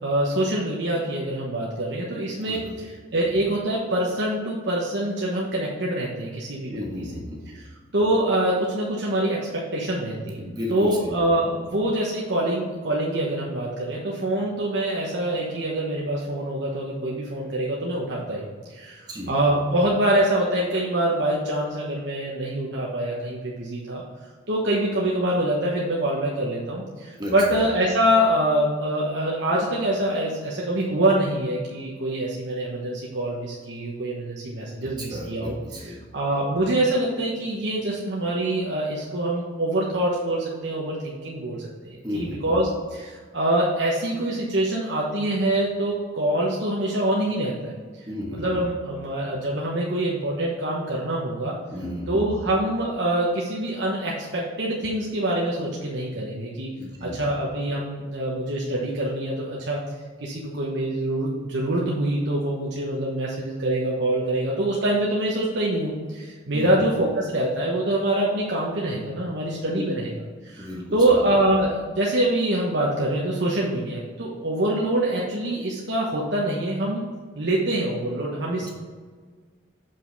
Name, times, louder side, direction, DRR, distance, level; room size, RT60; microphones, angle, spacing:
voice 1, 0.0-7.1 7.5-10.4 10.7-24.0 24.5-41.6 41.8-48.0 48.3-51.5 52.1-56.7 57.0-59.8 60.2-70.1 70.4-77.0 77.4-78.7, right 1 dB, 60° right, -4 dB, 1.2 m, -25 dB
voice 2, 2.4-2.7 6.7-7.5 10.4-11.1 19.1-19.3 27.2-27.5 34.8-36.0 42.0-42.5 48.1-48.4 51.7-52.2 56.8-57.2 66.5-66.7 69.8-69.9 70.6-71.1 78.6-78.7, left 1 dB, 20° right, -2 dB, 1.5 m, -34 dB
7.4 x 5.5 x 4.1 m, 1.5 s
head